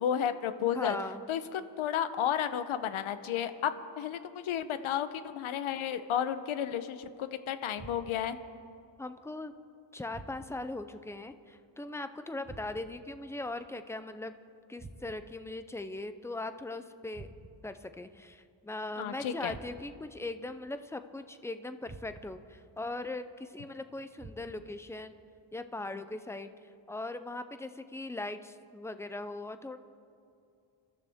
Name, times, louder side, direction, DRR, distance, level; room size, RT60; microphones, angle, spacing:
voice 1, 0.0-1.0 1.3-8.4 19.0-19.5, left 9 dB, 85° left, 11 dB, 0.9 m, -32 dB
voice 2, 0.7-1.2 9.0-9.5 9.9-14.3 14.7-17.3 17.6-25.2 25.5-26.5 26.9-29.8, left 2 dB, 5° left, 10 dB, 0.3 m, -40 dB
sound 1, 7.8-8.4 10.1-10.7 12.4-13.1 14.8-15.4 17.1-17.8 19.5-20.1 21.8-22.5 24.2-24.8, right 3 dB, 20° right, 0.7 m, -50 dB
26.5 x 13.5 x 3.5 m, 2.5 s
wide cardioid pair, 170°, 48 cm